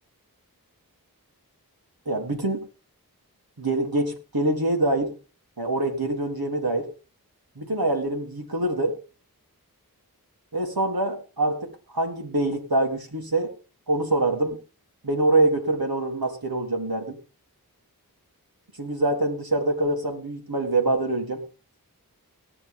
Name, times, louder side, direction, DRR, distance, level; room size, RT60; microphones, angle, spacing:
voice 1, 2.1-2.6 3.6-5.1 5.6-6.9 7.6-9.0 10.5-13.5 13.9-14.6 15.0-17.2 18.8-21.4, right 2 dB, 75° right, 3 dB, 3.5 m, -25 dB
17.5 x 10.0 x 3.8 m, 0.35 s
wide cardioid pair, 40°, 37 cm